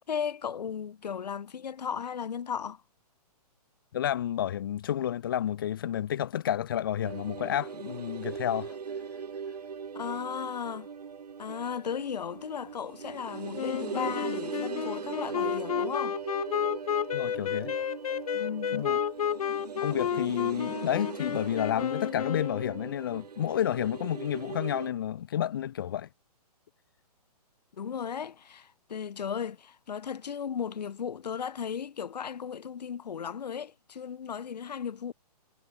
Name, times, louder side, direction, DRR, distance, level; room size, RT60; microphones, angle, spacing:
voice 1, 0.1-2.8 9.9-10.9 11.4-16.2 18.3-18.8 27.8-35.1, left 7 dB, 85° left, 1.1 m, -36 dB
voice 2, 3.9-8.8 17.1-17.7 18.7-19.0 19.8-26.1, left 10 dB, 35° left, 1.3 m, -30 dB
sound 1, 7.0-24.9, right 6 dB, 75° right, 4.4 m, -40 dB
Wind instrument woodwind instrument, 13.5-23.0, left 9 dB, 65° left, 0.5 m, -32 dB
hypercardioid pair, 180°, 20 cm